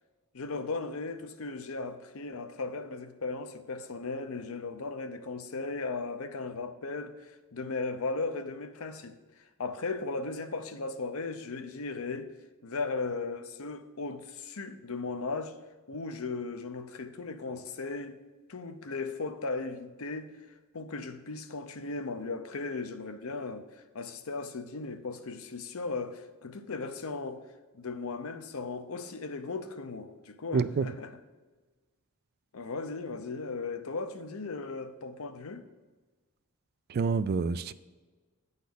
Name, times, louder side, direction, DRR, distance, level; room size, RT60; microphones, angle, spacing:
voice 1, 0.3-12.3 12.6-15.5 15.9-18.2 18.5-20.3 20.7-27.4 27.7-31.1 32.5-35.6, left 3 dB, 65° left, 0.7 m, -37 dB
voice 2, 30.5-30.9 36.9-37.7, right 5 dB, 45° right, 0.3 m, -27 dB
9.4 x 4.1 x 6.9 m
head